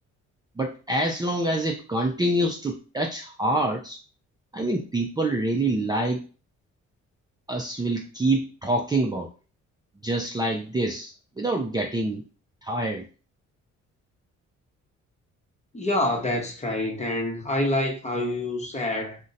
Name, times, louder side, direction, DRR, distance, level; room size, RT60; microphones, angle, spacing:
voice 1, 0.6-4.0 4.5-6.2 7.5-9.3 10.0-12.2 12.6-13.0, right 1 dB, 15° right, 0.4 m, -26 dB
voice 2, 15.7-19.2, left 1 dB, 20° left, 0.8 m, -27 dB
2.5 x 2.1 x 3.9 m
cardioid pair, 90°, 30 cm